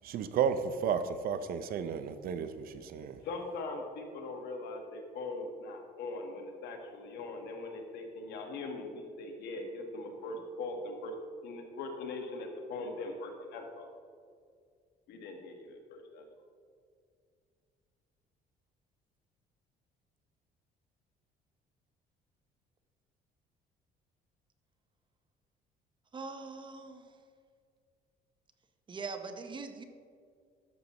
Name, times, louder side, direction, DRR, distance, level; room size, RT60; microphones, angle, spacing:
voice 1, 0.0-3.2, right 7 dB, 60° right, 11 dB, 0.6 m, -33 dB
voice 2, 3.2-11.1 11.4-13.9 15.1-16.2, left 2 dB, 80° left, 3 dB, 1.3 m, -41 dB
voice 3, 26.1-27.0 28.9-29.8, right 4 dB, 30° right, 7 dB, 0.7 m, -41 dB
11.5 x 6.8 x 3.0 m, 2.2 s
cardioid pair, 110°, 17 cm